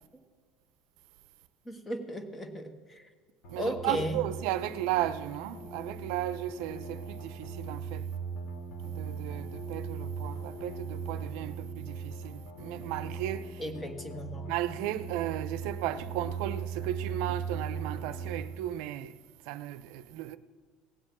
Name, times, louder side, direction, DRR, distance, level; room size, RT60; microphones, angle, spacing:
voice 1, 1.6-3.1 3.6-4.2 13.6-14.5, equal, 15° left, 1.4 m, -35 dB
sound 1, 3.4-18.4, right 5 dB, 70° left, 2.5 m, -39 dB
voice 2, 3.5-8.1 8.8-13.6 14.5-19.2 19.4-20.4, right 13 dB, 75° right, 0.6 m, -35 dB
17.0 x 7.7 x 7.4 m
cardioid pair, 135°, 0 cm